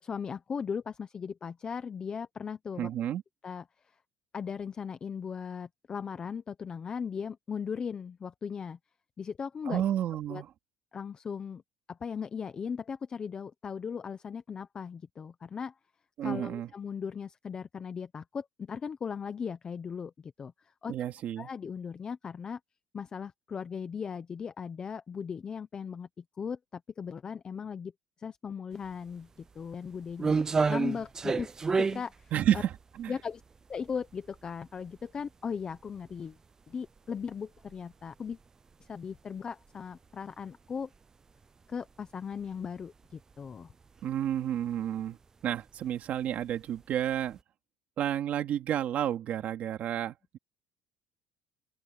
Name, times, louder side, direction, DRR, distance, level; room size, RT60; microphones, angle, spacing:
voice 1, 0.0-2.9 3.4-3.6 4.3-8.8 9.2-9.8 10.3-10.4 10.9-11.6 11.9-15.7 16.2-20.9 21.4-22.6 22.9-27.9 28.2-30.4 30.7-31.5 31.8-32.6 33.1-33.4 33.7-36.4 36.7-38.4 38.8-40.9 41.7-43.7, left 6 dB, 20° left, 0.6 m, -38 dB
voice 2, 2.8-3.2 9.6-10.5 16.2-16.7 20.9-21.5 32.3-33.1 44.0-45.2 45.4-47.4 48.0-50.4, right 10 dB, 40° right, 2.6 m, -31 dB
sound 1, 28.8-28.9 29.4-34.5 34.9-35.0 35.7-35.8 36.1-36.2 37.2-37.3 37.6-37.8 38.3-38.4 38.7-38.8 40.9-41.0 42.3-42.7 43.0-43.5 43.8-44.0 44.3-44.4 45.5-45.7 46.3-47.0 47.3-47.4, right 4 dB, 15° right, 0.4 m, -30 dB
open air
cardioid pair, 175°, 4 cm